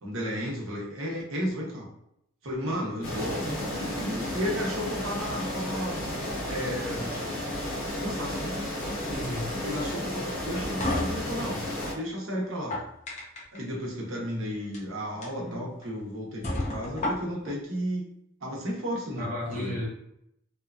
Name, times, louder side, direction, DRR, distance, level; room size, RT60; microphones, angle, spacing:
voice 1, 0.0-1.9 2.4-6.0 6.5-7.1 8.0-8.6 9.6-12.8 13.5-18.0 18.4-19.3 19.5-19.8, equal, 70° right, -3 dB, 0.8 m, -33 dB
sound 1, 3.0-11.9, left 1 dB, 85° left, 1.3 m, -33 dB
voice 2, 9.1-9.5 14.8-15.0 15.4-15.6 19.2-19.9, left 1 dB, 40° right, -4 dB, 0.9 m, -34 dB
sound 2, 10.3-11.9 12.5-13.6 14.6-14.8 15.2-15.3 15.8-15.9 16.4-17.5, left 1 dB, 35° left, 0.6 m, -32 dB
2.8 x 2.3 x 2.4 m, 0.76 s
head